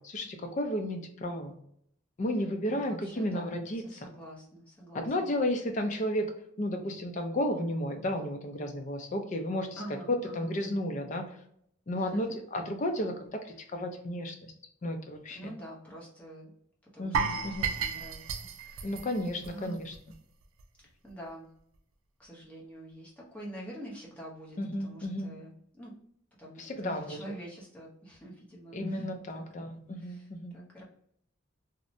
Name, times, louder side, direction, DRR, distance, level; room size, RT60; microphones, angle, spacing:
voice 1, 0.0-1.5 2.2-4.0 4.9-6.3 6.6-11.4 11.9-14.5 14.8-15.5 17.0-17.7 18.8-20.0 24.6-25.3 26.6-27.2 28.7-30.6, left 1 dB, 35° left, 4 dB, 0.4 m, -33 dB
voice 2, 2.6-5.3 9.8-10.5 11.9-12.4 15.3-16.5 16.9-18.9 19.5-19.8 21.0-21.5 22.2-25.9 26.4-29.1 29.3-29.7 30.0-30.8, right 1 dB, 5° left, -5 dB, 0.7 m, -46 dB
sound 1, 17.1-20.1 20.4-20.6 21.1-21.2, right 5 dB, 75° right, 0.3 m, -33 dB
2.7 x 2.1 x 2.5 m, 0.68 s
head